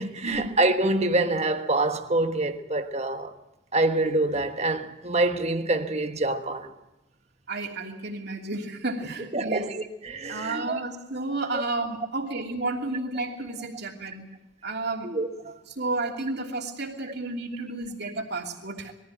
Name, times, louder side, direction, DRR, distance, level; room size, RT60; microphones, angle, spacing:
voice 1, 0.0-3.3 3.7-6.7 9.3-10.8 11.5-11.6 15.0-15.6, right 2 dB, 30° right, 1.3 m, -26 dB
voice 2, 7.5-9.6 10.3-14.2 14.6-15.1 15.8-18.9, right 2 dB, 50° right, 2.9 m, -32 dB
22.0 x 15.0 x 9.1 m
head